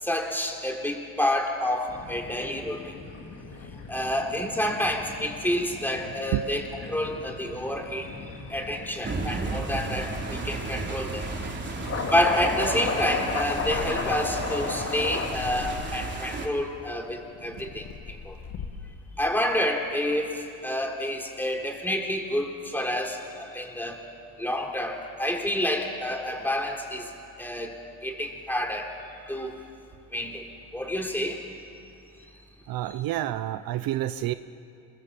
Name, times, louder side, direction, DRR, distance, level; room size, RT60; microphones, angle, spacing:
voice 1, 0.0-2.9 3.9-8.1 8.5-11.3 12.1-18.3 19.2-24.0 24.4-27.1 27.4-27.7 28.0-28.9 29.3-29.6 30.1-30.4 30.7-31.4, left 1 dB, 5° left, 2 dB, 4.1 m, -29 dB
sound 1, 1.9-15.3, left 4 dB, 40° left, 3.7 m, -35 dB
sound 2, 9.0-16.5, right 3 dB, 30° right, 3.4 m, -34 dB
Purr, 13.4-14.5 15.1-16.2 16.9-19.0, left 6 dB, 65° left, 2.4 m, -40 dB
voice 2, 32.7-34.3, right 14 dB, 65° right, 12 dB, 0.8 m, -29 dB
26.0 x 23.0 x 7.8 m, 2.6 s
cardioid pair, 100°, 38 cm